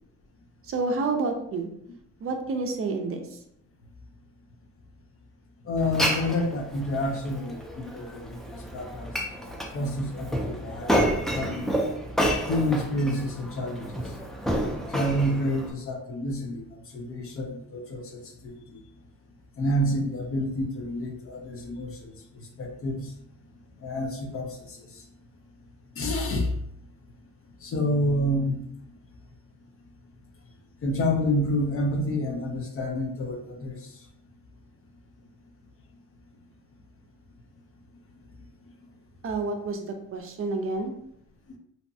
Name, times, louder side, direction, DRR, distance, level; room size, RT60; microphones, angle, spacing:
voice 1, 0.6-1.7 2.2-3.2 39.2-40.9, right 3 dB, 45° right, 4 dB, 0.5 m, -29 dB
voice 2, 5.6-9.1 9.4-11.0 11.3-11.8 12.5-14.0 14.9-18.8 19.6-22.1 22.6-23.1 23.8-24.8 26.0-26.5 27.6-28.6 30.8-33.8, left 1 dB, 45° left, 2 dB, 0.6 m, -29 dB
Glass, 5.8-15.7, equal, ahead, 0.4 m, -30 dB
2.7 x 2.1 x 2.6 m, 0.72 s
cardioid pair, 90°, 30 cm